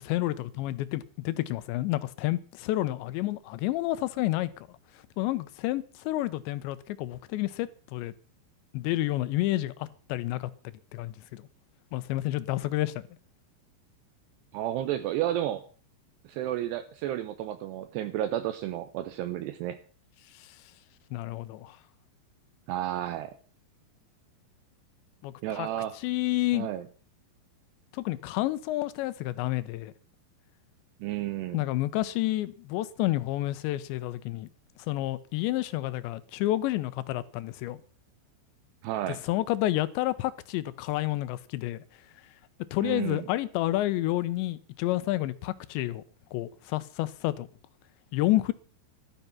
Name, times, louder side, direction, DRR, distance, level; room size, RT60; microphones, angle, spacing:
voice 1, 0.1-4.5 5.2-8.1 8.7-11.4 11.9-13.1 20.4-20.5 21.1-21.8 25.2-25.7 26.0-26.7 27.9-29.9 31.5-34.5 34.9-37.8 39.2-41.8 42.7-46.0 46.3-47.5 48.1-48.5, left 16 dB, 90° left, 3.1 m, -30 dB
voice 2, 14.5-15.6 16.2-19.8 22.7-23.3 25.4-26.0 26.5-26.9 31.0-31.6 38.8-39.2 42.8-43.3, right 12 dB, 80° right, 2.8 m, -32 dB
13.5 x 12.5 x 5.8 m
omnidirectional pair, 5.0 m